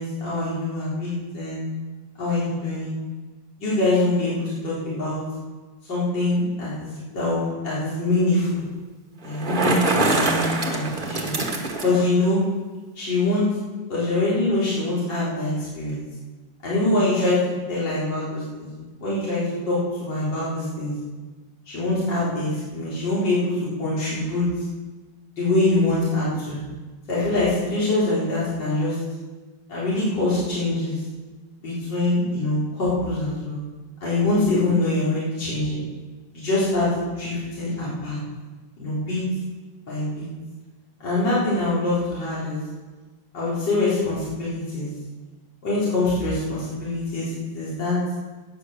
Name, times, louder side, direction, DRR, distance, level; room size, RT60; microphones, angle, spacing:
voice 1, 0.0-1.6 2.2-3.0 3.6-5.2 5.9-8.6 9.2-11.3 11.8-12.4 13.0-13.5 13.9-16.0 16.6-18.7 19.0-20.9 21.7-24.5 25.4-26.6 27.1-29.0 29.7-31.0 31.6-33.6 34.0-35.8 36.3-36.9 37.2-38.2 38.8-39.2 39.8-40.3 41.0-42.6 43.3-44.9 45.6-48.0, left 2 dB, 55° left, -9 dB, 4.6 m, -24 dB
Bicycle, 9.2-12.1, right 2 dB, 25° right, 1.2 m, -24 dB
11.5 x 9.1 x 6.8 m, 1.3 s
omnidirectional pair, 2.3 m